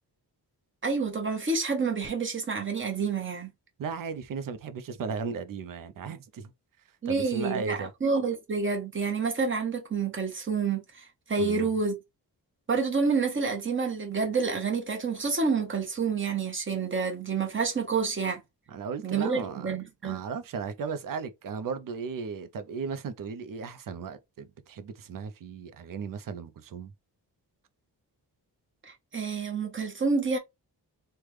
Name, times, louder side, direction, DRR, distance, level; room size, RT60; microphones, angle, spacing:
voice 1, 0.8-3.5 7.0-11.9 12.7-18.4 19.0-20.2 28.8-30.4, right 4 dB, 30° right, 0.9 m, -28 dB
voice 2, 3.8-6.5 7.1-7.9 11.4-11.7 18.7-19.7 20.0-26.9, right 5 dB, 55° right, 0.6 m, -36 dB
3.3 x 2.1 x 3.2 m
wide cardioid pair, 105°, 41 cm